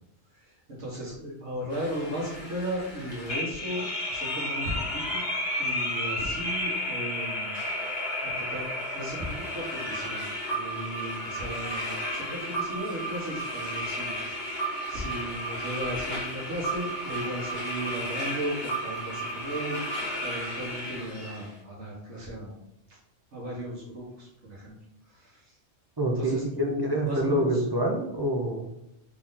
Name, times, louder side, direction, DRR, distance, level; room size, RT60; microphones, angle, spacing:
voice 1, 0.3-5.2 5.6-7.5 8.2-10.2 10.5-14.5 14.9-19.8 20.2-22.5 22.9-23.0 23.3-24.7 25.1-25.6 26.1-27.6, equal, 75° right, -7 dB, 1.7 m, -36 dB
sound 1, 1.7-21.5, equal, 60° left, 1.3 m, -33 dB
voice 2, 26.0-28.7, right 1 dB, 35° right, 0 dB, 0.4 m, -26 dB
4.6 x 2.7 x 3.7 m, 0.86 s
omnidirectional pair, 1.2 m